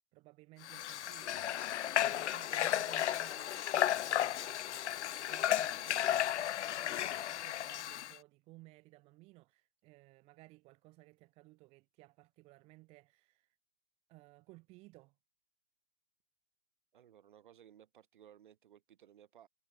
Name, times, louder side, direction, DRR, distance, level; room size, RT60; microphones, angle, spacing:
voice 1, 0.1-4.8 5.3-13.5 14.1-15.2, right 22 dB, 15° right, 7.6 m, -59 dB
Water / Water tap faucet, 0.6-8.2, left 11 dB, 70° left, 0.5 m, -34 dB
voice 2, 16.9-19.5, right 10 dB, 40° right, 6.7 m, -60 dB
hypercardioid pair, 180°, 37 cm